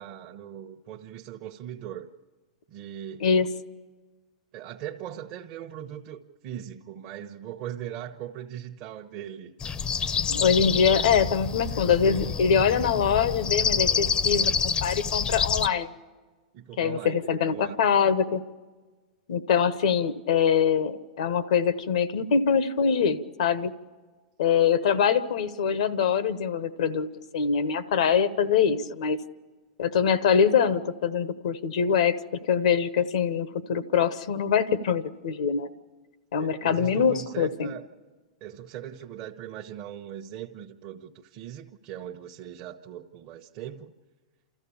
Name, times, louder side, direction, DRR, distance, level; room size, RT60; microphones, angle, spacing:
voice 1, 0.0-2.1 2.7-3.2 4.5-9.5 16.5-17.8 36.4-37.8 38.4-43.9, right 10 dB, 45° right, 1 dB, 0.9 m, -40 dB
sound 1, 9.6-15.7, left 6 dB, 25° left, 0.6 m, -27 dB
voice 2, 10.3-15.9 16.8-18.4 19.3-23.7 24.4-27.1 27.3-29.2 29.8-32.2 32.5-35.7 36.3-37.7, left 7 dB, 75° left, 14 dB, 1.0 m, -24 dB
29.5 x 14.0 x 7.1 m, 1.4 s
hypercardioid pair, 115°, 4 cm